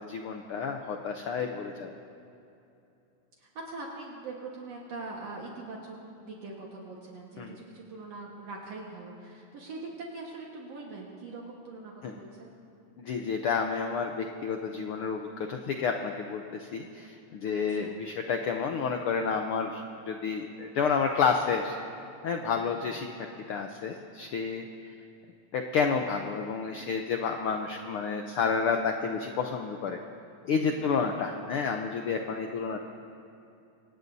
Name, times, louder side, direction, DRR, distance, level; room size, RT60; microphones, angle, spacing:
voice 1, 0.0-1.9 7.4-7.6 12.0-12.1 13.0-21.8 22.2-23.1 23.5-24.6 25.5-30.0 30.4-32.8, left 5 dB, 80° left, 4 dB, 1.2 m, -30 dB
voice 2, 3.4-12.5 14.7-14.8 17.4-18.0 22.4-22.7 30.7-31.0, right 3 dB, 65° right, -2 dB, 2.5 m, -42 dB
25.0 x 19.0 x 2.7 m, 2.8 s
omnidirectional pair, 3.3 m